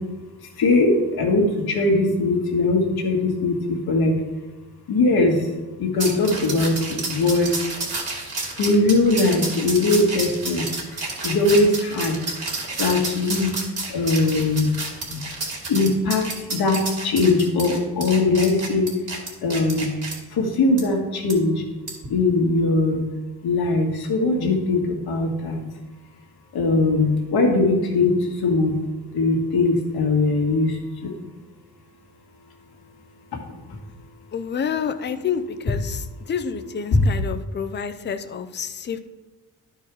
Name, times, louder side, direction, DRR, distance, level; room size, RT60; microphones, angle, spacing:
voice 1, 0.6-4.1 4.9-5.5 5.8-7.5 8.6-10.6 11.2-12.2 12.8-13.5 13.9-14.7 15.1-15.2 15.7-18.9 19.4-19.9 20.3-21.6 22.1-23.0 23.4-25.6 26.5-28.7 29.1-30.8 31.0-31.2 33.3-33.4 36.9-37.0, left 2 dB, 80° left, 2 dB, 1.8 m, -20 dB
sound 1, 6.0-20.2 20.8-20.9 21.3-21.4 21.9-22.1, right 3 dB, 40° right, 2.3 m, -30 dB
voice 2, 34.3-39.0, left 7 dB, 30° left, 9 dB, 0.5 m, -28 dB
12.0 x 4.6 x 4.8 m, 1.1 s
wide cardioid pair, 165°, 37 cm